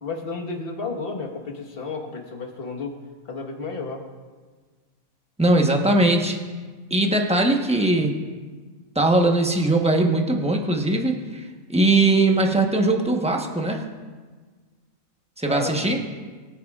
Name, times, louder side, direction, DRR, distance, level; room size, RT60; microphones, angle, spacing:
voice 1, 0.0-3.0 3.2-4.0 15.4-15.9, left 3 dB, 45° left, 2 dB, 1.5 m, -32 dB
voice 2, 5.4-6.4 6.9-8.1 8.9-13.8 15.4-16.0, right 2 dB, 5° right, 1 dB, 0.8 m, -20 dB
24.0 x 9.2 x 2.4 m, 1.4 s
omnidirectional pair, 1.5 m